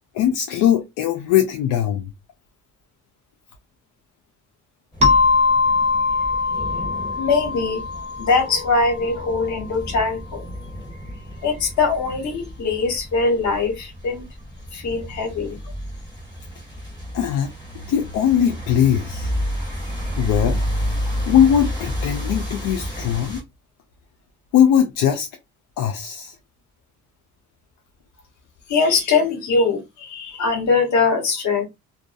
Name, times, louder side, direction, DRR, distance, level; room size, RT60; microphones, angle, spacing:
voice 1, 0.1-2.1 17.1-17.5 17.9-19.3 20.2-20.6 21.3-23.4 24.5-25.3 25.8-26.3, left 9 dB, 90° left, 0.5 m, -20 dB
sound 1, 4.9-23.4, equal, 15° left, 1.6 m, -31 dB
sound 2, 5.0-9.4, left 4 dB, 20° right, 0.7 m, -21 dB
voice 2, 7.2-7.8 8.2-10.4 11.4-14.2 14.7-15.6 28.7-31.6, left 4 dB, 70° left, 1.3 m, -21 dB
2.5 x 2.3 x 2.5 m
cardioid pair, 90°, 30 cm